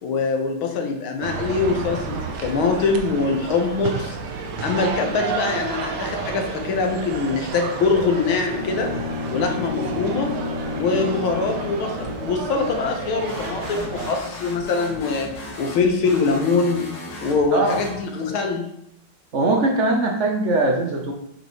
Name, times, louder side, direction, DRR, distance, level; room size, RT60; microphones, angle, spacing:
voice 1, 0.0-4.2 4.6-8.9 9.3-10.3 10.8-15.3 15.6-16.9 17.2-18.7, left 4 dB, 80° left, 3 dB, 1.8 m, -23 dB
sound 1, 1.2-14.2, right 5 dB, 65° right, 1.2 m, -31 dB
Bowed string instrument, 8.4-12.5, left 4 dB, 40° left, 2.3 m, -32 dB
sound 2, 13.2-18.4, left 1 dB, 60° left, 2.2 m, -37 dB
voice 2, 19.3-21.1, right 2 dB, 80° right, 2 dB, 0.6 m, -21 dB
8.1 x 5.2 x 3.0 m, 0.75 s
omnidirectional pair, 2.2 m